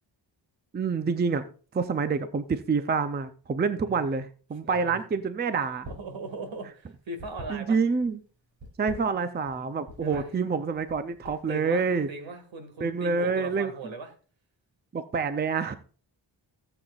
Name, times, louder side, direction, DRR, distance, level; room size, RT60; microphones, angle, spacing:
voice 1, 0.7-1.5 1.7-5.9 7.5-8.2 8.8-12.1 12.8-13.9 14.9-15.8, right 5 dB, 25° right, 0.5 m, -27 dB
voice 2, 3.8-4.1 4.6-5.0 5.8-7.8 10.0-10.3 11.5-14.1, right 2 dB, 75° right, 2.1 m, -39 dB
sound 1, 5.7-6.2 6.4-8.0 8.5-9.6 9.9-10.2 10.8-11.6, equal, 60° right, 5.0 m, -43 dB
16.5 x 7.9 x 2.4 m
wide cardioid pair, 175°, 46 cm